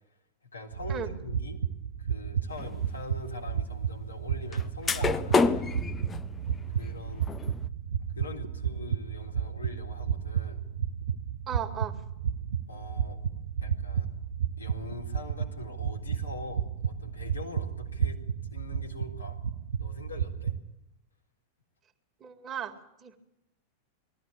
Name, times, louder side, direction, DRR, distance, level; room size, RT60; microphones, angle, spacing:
voice 1, 0.5-1.6 2.0-5.7 6.8-7.3 8.1-10.6 12.7-13.2 13.6-14.1 14.6-18.2 18.5-19.4 19.8-20.6, left 3 dB, 75° left, -1 dB, 3.8 m, -43 dB
sound 1, 0.7-20.6, right 8 dB, 70° right, 0.8 m, -33 dB
sound 2, 2.6-2.7 4.5-4.6 4.9-7.7, left 4 dB, 20° left, 0.7 m, -28 dB
voice 2, 11.5-12.0 22.2-23.2, right 8 dB, 25° right, 4 dB, 2.3 m, -37 dB
20.5 x 14.5 x 8.6 m, 0.86 s
figure-of-eight pair, 90°, 0 cm